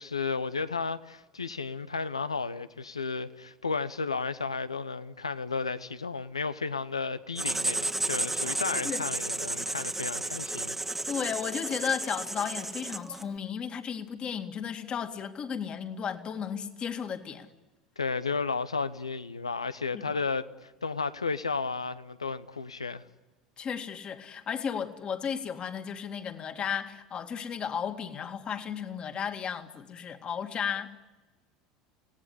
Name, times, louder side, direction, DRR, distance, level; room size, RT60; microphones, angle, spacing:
voice 1, 0.0-10.8 18.0-23.0, left 4 dB, 90° left, 0.9 m, -33 dB
Writing, 7.4-13.3, right 2 dB, 10° right, 1.5 m, -33 dB
voice 2, 11.1-17.5 19.9-20.2 23.6-30.9, left 7 dB, 35° left, 2.2 m, -34 dB
28.5 x 18.0 x 9.9 m
figure-of-eight pair, 75°, 3 cm